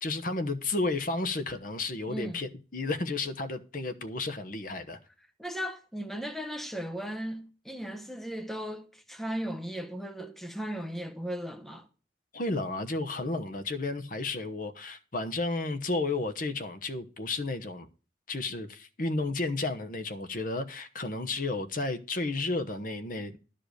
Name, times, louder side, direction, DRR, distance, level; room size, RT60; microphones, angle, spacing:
voice 1, 0.0-5.0 12.3-17.9 18.3-23.4, left 3 dB, 45° left, 1.0 m, -32 dB
voice 2, 5.4-11.9, equal, ahead, 1.0 m, -36 dB
12.0 x 5.1 x 6.5 m
head